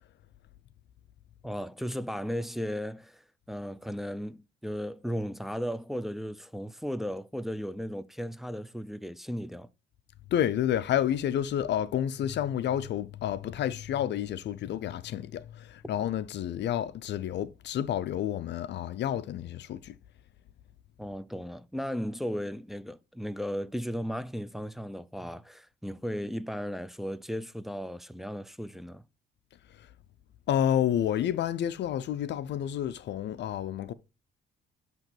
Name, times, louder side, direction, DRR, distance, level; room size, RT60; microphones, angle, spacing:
voice 1, 1.4-9.7 21.0-29.0, equal, ahead, 0.3 m, -35 dB
voice 2, 10.3-20.0 29.7-29.9 30.5-33.9, left 10 dB, 65° left, 0.4 m, -30 dB
7.6 x 3.0 x 4.4 m
cardioid pair, 90°, 20 cm